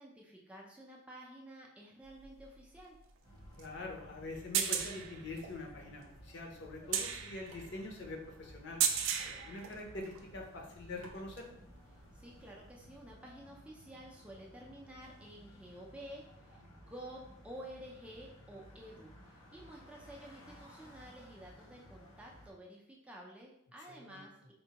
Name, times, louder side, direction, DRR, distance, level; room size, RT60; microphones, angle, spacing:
voice 1, 0.0-3.0 12.1-24.5, right 1 dB, 5° right, -2 dB, 0.4 m, -51 dB
sound 1, 2.0-10.3 10.8-11.6 12.9-13.0, right 8 dB, 75° right, 0.4 m, -37 dB
sound 2, 3.2-22.5, equal, 80° left, 1.3 m, -57 dB
voice 2, 3.6-8.8 9.2-11.5 23.9-24.2, left 2 dB, 60° left, 0 dB, 0.7 m, -45 dB
4.3 x 2.2 x 2.8 m, 0.79 s
head